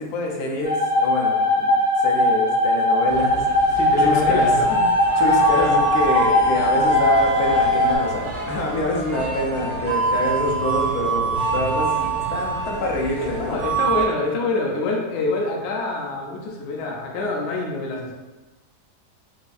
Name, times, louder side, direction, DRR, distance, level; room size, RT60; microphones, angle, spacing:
voice 1, 0.0-1.7 2.0-3.5 4.0-4.6 5.2-13.6, left 1 dB, 80° left, -1 dB, 1.2 m, -26 dB
sound 1, 0.6-8.0, left 1 dB, 90° right, 1.5 m, -20 dB
sound 2, 3.1-14.1, right 3 dB, 75° right, 1.1 m, -25 dB
voice 2, 3.7-4.8 5.5-5.7 13.4-18.1, left 3 dB, 60° left, -1 dB, 0.8 m, -26 dB
4.7 x 2.3 x 2.5 m, 1.1 s
omnidirectional pair, 1.6 m